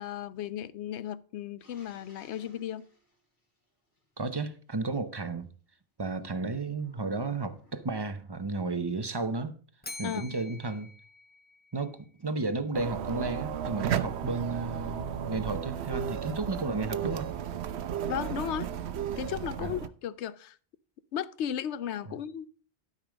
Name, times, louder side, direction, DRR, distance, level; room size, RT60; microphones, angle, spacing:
voice 1, 0.0-2.9 10.0-10.2 18.0-18.7 19.2-20.6 21.1-22.5, left 10 dB, 85° left, 0.9 m, -35 dB
sound 1, 1.6-4.3 6.7-8.1, equal, 45° left, 3.5 m, -62 dB
voice 2, 4.2-5.5 6.0-9.6 10.0-10.9 11.7-17.3 19.6-19.7 22.1-22.2, right 3 dB, 25° right, 0.7 m, -33 dB
Bell, 9.8-12.0, left 2 dB, 10° left, 0.7 m, -46 dB
sound 2, 12.7-19.9, right 9 dB, 75° right, 0.9 m, -34 dB
12.0 x 5.3 x 5.0 m
omnidirectional pair, 1.1 m